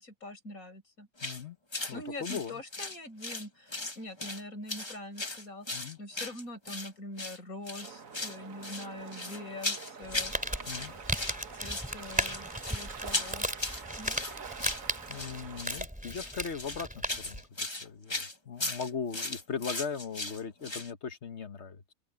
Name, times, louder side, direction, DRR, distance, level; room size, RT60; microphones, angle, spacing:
voice 1, 0.0-1.1 1.9-5.7 6.0-10.3 10.9-11.0 11.5-13.6 14.0-14.2, left 1 dB, 75° left, 6.7 m, -44 dB
voice 2, 1.2-1.6 1.9-2.6 5.7-6.0 10.7-10.9 15.1-21.9, left 6 dB, 55° left, 1.4 m, -39 dB
sound 1, 1.2-1.4 1.7-1.9 2.2-3.5 3.7-4.4 4.7-6.9 7.2-7.4 7.7-8.4 8.6-10.4 10.6-11.4 11.6-20.9, left 2 dB, 20° left, 1.4 m, -37 dB
sound 2, 7.8-15.7, right 6 dB, 70° right, 1.8 m, -46 dB
Crumpling crinkling, 10.0-17.4, equal, 5° right, 2.9 m, -36 dB
omnidirectional pair, 1.5 m